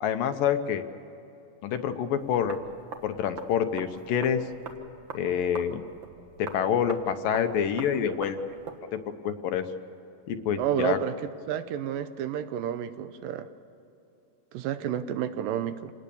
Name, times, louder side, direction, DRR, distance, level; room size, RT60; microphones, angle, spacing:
voice 1, 0.0-0.8 1.6-2.6 3.0-4.4 5.1-5.8 6.4-8.4 9.2-9.7 10.3-11.0, left 8 dB, 75° left, 8 dB, 2.5 m, -27 dB
sound 1, 2.2-8.8, right 4 dB, 55° right, 1.4 m, -44 dB
voice 2, 10.6-13.5 14.5-15.9, right 10 dB, 80° right, 11 dB, 2.3 m, -30 dB
27.5 x 19.0 x 7.0 m, 2.9 s
omnidirectional pair, 4.2 m